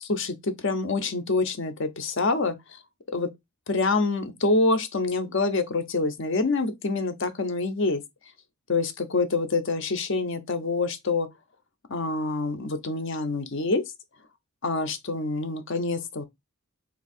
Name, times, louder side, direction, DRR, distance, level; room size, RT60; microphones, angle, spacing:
voice 1, 0.0-2.6 3.1-3.3 3.7-8.0 8.7-11.3 11.9-13.8 14.6-16.3, left 3 dB, 55° left, 0.7 m, -26 dB
3.5 x 2.8 x 4.2 m
head